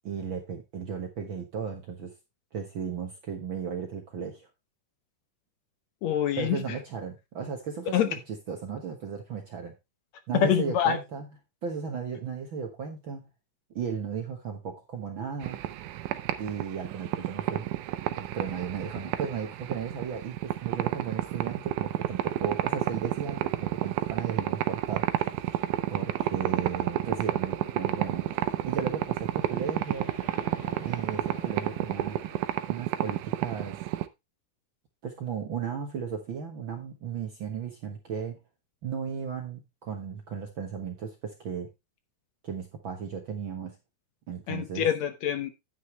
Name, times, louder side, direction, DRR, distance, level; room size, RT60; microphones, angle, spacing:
voice 1, 0.0-2.1 2.5-4.5 6.4-9.7 10.3-11.3 11.6-13.3 13.7-15.6 16.4-17.7 18.2-25.1 25.9-28.3 28.6-30.1 30.8-32.2 32.7-33.8 35.0-38.4 38.8-41.7 42.4-43.8 44.3-44.9, right 6 dB, 55° right, 1.5 m, -35 dB
voice 2, 6.0-6.6 7.9-8.1 10.3-11.0 44.5-45.5, left 9 dB, 70° left, 2.0 m, -25 dB
sound 1, 15.4-34.1, right 14 dB, 80° right, 2.3 m, -30 dB
sound 2, 25.3-32.4, left 2 dB, 90° left, 5.4 m, -49 dB
9.7 x 9.1 x 3.1 m
omnidirectional pair, 3.6 m